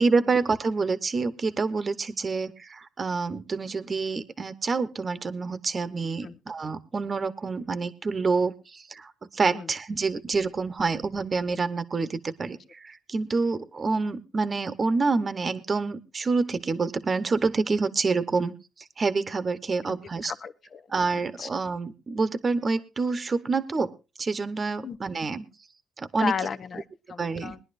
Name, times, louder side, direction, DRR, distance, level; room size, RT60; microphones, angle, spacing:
voice 1, 0.0-18.5 19.0-20.3 20.9-25.5 26.0-26.3 27.2-27.5, right 4 dB, 35° right, 11 dB, 1.0 m, -27 dB
voice 2, 20.2-20.9 21.1-21.5 24.8-25.0 26.1-27.6, left 6 dB, 50° left, 13 dB, 0.8 m, -34 dB
21.5 x 11.0 x 2.6 m, 0.29 s
cardioid pair, 90°, 0 cm